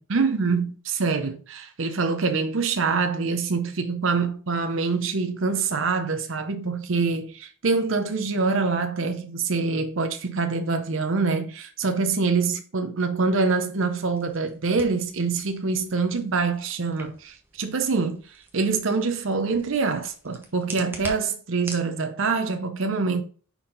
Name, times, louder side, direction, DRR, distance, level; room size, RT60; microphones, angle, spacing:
voice 1, 0.0-23.2, right 4 dB, 65° right, 0.7 m, -25 dB
sound 1, 13.9-21.9, right 2 dB, 10° right, 0.9 m, -44 dB
5.6 x 4.4 x 3.8 m
head